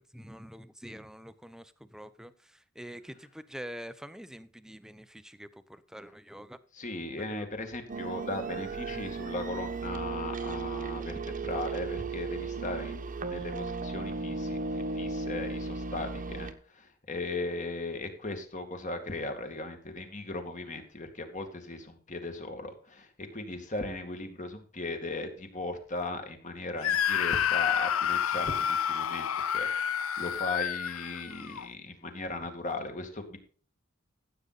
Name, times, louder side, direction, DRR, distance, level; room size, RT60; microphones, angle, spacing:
voice 1, 0.0-2.3 2.8-6.6, equal, 5° right, 0.7 m, -45 dB
voice 2, 6.7-33.4, left 2 dB, 35° left, 2.2 m, -37 dB
sound 1, 7.9-16.5, right 4 dB, 40° right, 1.2 m, -35 dB
Screaming, 26.8-31.7, left 8 dB, 75° left, 0.6 m, -29 dB
15.0 x 7.9 x 4.1 m
head